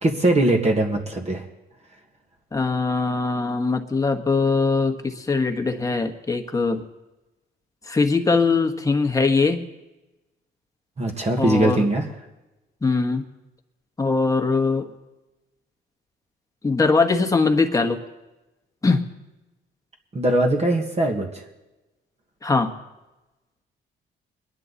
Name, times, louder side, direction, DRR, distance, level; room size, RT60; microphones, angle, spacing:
voice 1, 0.0-1.4 11.0-12.1 20.1-21.4, right 1 dB, 35° right, 2 dB, 1.9 m, -21 dB
voice 2, 2.5-6.8 7.9-9.6 11.4-11.9 12.8-13.2 14.0-14.9 16.6-18.0 18.8-19.1 22.4-22.7, left 4 dB, 15° left, 4 dB, 1.5 m, -21 dB
22.0 x 10.5 x 4.2 m, 1.0 s
cardioid pair, 90°, 20 cm